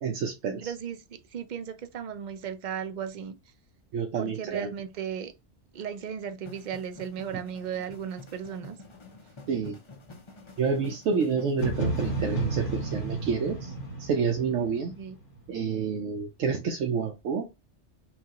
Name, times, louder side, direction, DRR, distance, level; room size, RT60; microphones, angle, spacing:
voice 1, 0.0-0.7 3.9-4.7 9.5-9.8 10.6-13.7 14.0-14.9 15.5-17.5, right 5 dB, 90° right, 1.0 m, -28 dB
voice 2, 0.6-3.4 4.2-5.3 5.7-8.8 15.0-15.2, right 8 dB, 55° right, 0.5 m, -36 dB
sound 1, 6.4-12.3, left 2 dB, 30° left, 0.6 m, -48 dB
sound 2, 11.6-15.5, right 2 dB, 65° left, 1.9 m, -32 dB
5.9 x 2.3 x 2.9 m
omnidirectional pair, 1.2 m